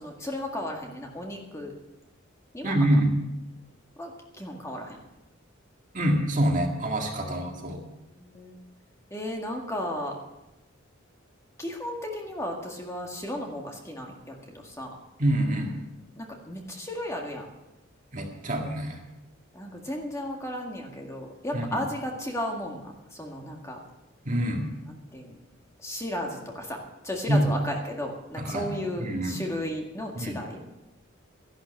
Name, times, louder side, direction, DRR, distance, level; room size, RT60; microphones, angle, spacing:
voice 1, 0.0-1.7 2.5-2.8 4.0-4.1 4.4-5.0 7.2-8.5 9.1-10.1 11.6-15.0 16.2-17.5 19.5-23.8 24.9-25.4 25.8-30.6, left 1 dB, 15° left, 0 dB, 1.9 m, -35 dB
voice 2, 2.6-3.1 5.9-7.8 15.2-15.7 18.1-19.0 21.5-21.8 24.3-24.7 27.3-27.5 28.4-28.7 29.0-29.4 30.1-30.3, right 1 dB, 40° right, 1 dB, 2.0 m, -26 dB
13.0 x 11.5 x 6.5 m, 0.96 s
head